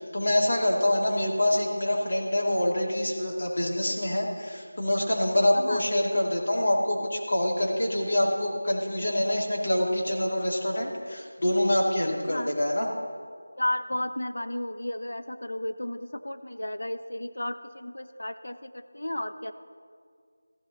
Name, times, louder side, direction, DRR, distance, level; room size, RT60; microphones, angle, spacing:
voice 1, 0.0-12.9, left 1 dB, 50° left, -2 dB, 2.5 m, -26 dB
voice 2, 13.6-19.5, left 1 dB, 80° left, 9 dB, 0.8 m, -33 dB
14.5 x 13.0 x 4.0 m, 2.1 s
figure-of-eight pair, 175°, 0 cm